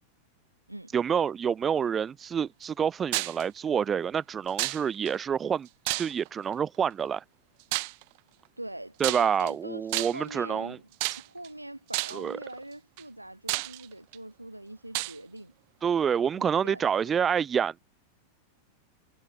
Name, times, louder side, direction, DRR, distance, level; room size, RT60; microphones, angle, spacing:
voice 1, 0.9-5.7 6.0-7.2 9.0-10.8 12.1-12.4 15.8-17.8, right 7 dB, 20° right, 0.4 m, -27 dB
sound 1, 3.1-3.4 4.6-5.1 5.9-6.4 7.7-8.0 9.0-9.5 9.9-10.3 11.0-11.5 11.9-12.3 13.0-13.1 13.5-14.2 14.9-15.2, right 29 dB, 45° right, 1.5 m, -30 dB
voice 2, 8.6-10.9 11.2-15.5 16.4-17.2, right 1 dB, 85° right, 1.4 m, -43 dB
figure-of-eight pair, 90°, 0 cm